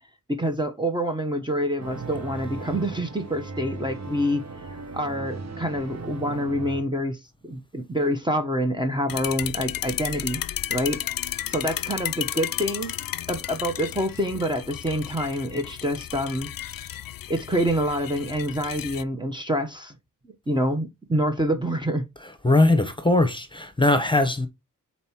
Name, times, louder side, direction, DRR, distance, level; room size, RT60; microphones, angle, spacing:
voice 1, 0.3-4.5 4.9-10.4 10.7-11.0 11.5-12.9 13.3-16.9 17.3-20.0 20.5-22.0, equal, 15° right, 1.0 m, -27 dB
sound 1, 1.8-6.8, right 4 dB, 50° right, 1.1 m, -37 dB
sound 2, 9.1-19.0, left 12 dB, 85° left, 0.5 m, -33 dB
voice 2, 22.4-24.5, left 2 dB, 15° left, 1.1 m, -20 dB
5.3 x 4.3 x 4.4 m
wide cardioid pair, 110°, 33 cm